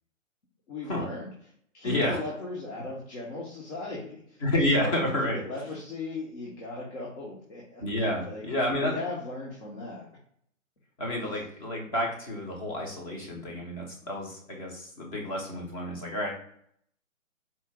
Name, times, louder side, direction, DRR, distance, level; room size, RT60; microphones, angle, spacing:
voice 1, 0.7-1.3 1.7-4.4 4.7-7.8 8.2-8.5 8.8-10.2, left 3 dB, 55° left, -5 dB, 1.2 m, -37 dB
voice 2, 1.8-2.2 4.4-5.4 7.8-8.9 11.0-16.3, left 1 dB, 25° left, -1 dB, 0.9 m, -29 dB
4.4 x 2.4 x 3.5 m, 0.66 s
figure-of-eight pair, 140°, 40 cm